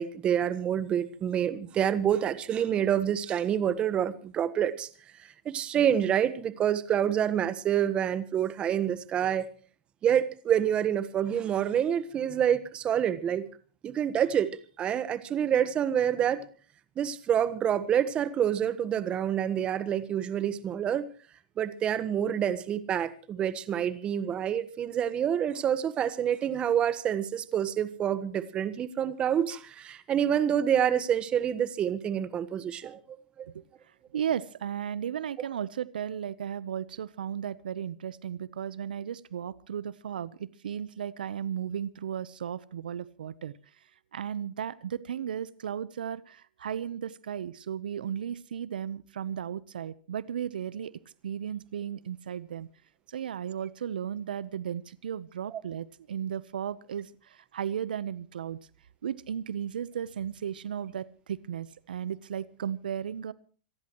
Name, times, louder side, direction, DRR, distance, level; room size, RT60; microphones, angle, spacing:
voice 1, 0.0-4.9 5.4-9.5 10.0-13.5 13.8-14.5 14.8-16.4 17.0-21.0 21.6-33.0 33.4-33.5, right 9 dB, 20° right, 15 dB, 1.2 m, -27 dB
voice 2, 34.1-43.5 44.1-50.9 51.2-52.7 53.1-58.6 59.0-63.3, right 9 dB, 80° right, 19 dB, 0.8 m, -35 dB
27.0 x 14.5 x 3.1 m, 0.41 s
hypercardioid pair, 140°, 5 cm